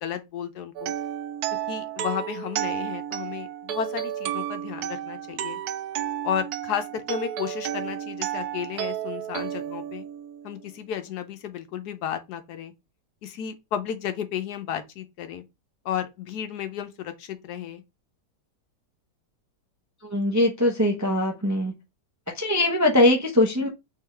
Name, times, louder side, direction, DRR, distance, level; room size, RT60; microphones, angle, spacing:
voice 1, 0.0-0.9 1.7-5.6 6.2-10.0 10.4-12.7 13.2-15.4 15.8-17.8, left 9 dB, 70° left, 1.2 m, -33 dB
sound 1, 0.8-10.7, right 11 dB, 75° right, 1.0 m, -32 dB
voice 2, 20.1-21.7 22.4-23.7, left 1 dB, 20° right, 0.4 m, -21 dB
3.8 x 3.5 x 3.1 m
omnidirectional pair, 1.8 m